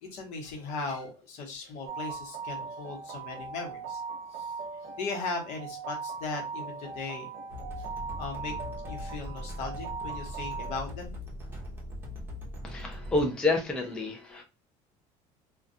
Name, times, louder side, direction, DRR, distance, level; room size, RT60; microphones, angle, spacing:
voice 1, 0.0-4.0 4.3-4.5 5.0-7.3 7.8-7.9 8.2-8.5 8.9-11.1, left 3 dB, 65° left, 2 dB, 1.0 m, -38 dB
sound 1, 1.9-10.8, right 5 dB, 50° right, 0.5 m, -39 dB
sound 2, 7.5-13.3, left 1 dB, 15° right, 0.7 m, -40 dB
voice 2, 12.6-14.4, left 2 dB, 5° left, 1 dB, 0.4 m, -29 dB
2.3 x 2.2 x 2.6 m, 0.28 s
cardioid pair, 160°, 13 cm